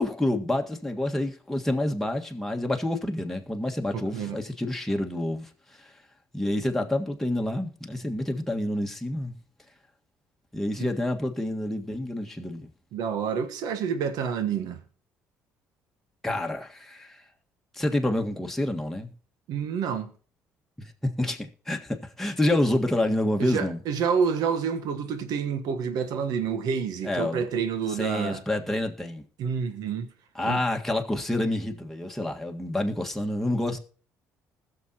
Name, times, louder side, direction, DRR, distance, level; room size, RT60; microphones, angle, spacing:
voice 1, 0.0-5.5 6.3-9.3 10.5-12.7 16.2-17.2 17.7-19.1 20.8-23.8 27.0-27.5 28.0-29.2 30.4-33.8, left 1 dB, 5° left, 1.7 m, -28 dB
voice 2, 3.9-4.4 12.9-14.8 19.5-20.1 23.4-28.4 29.4-30.1 30.4-30.6, right 6 dB, 70° right, 1.2 m, -28 dB
20.0 x 6.7 x 3.0 m
hypercardioid pair, 60°, 7 cm